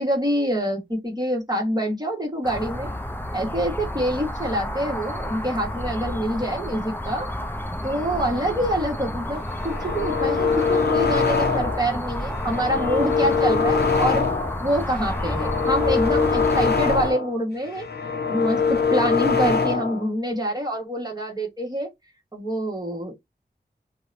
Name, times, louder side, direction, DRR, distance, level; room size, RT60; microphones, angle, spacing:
voice 1, 0.0-2.9 3.3-7.3 7.8-14.3 14.6-17.9 18.3-21.9 22.3-23.1, equal, 25° right, 1.1 m, -26 dB
sound 1, 2.4-17.1, left 1 dB, 10° left, 0.5 m, -30 dB
sound 2, 9.5-11.9 12.3-14.6 15.0-17.3 17.7-20.1, left 5 dB, 70° left, 0.6 m, -23 dB
2.7 x 2.1 x 2.4 m
wide cardioid pair, 60°, 17 cm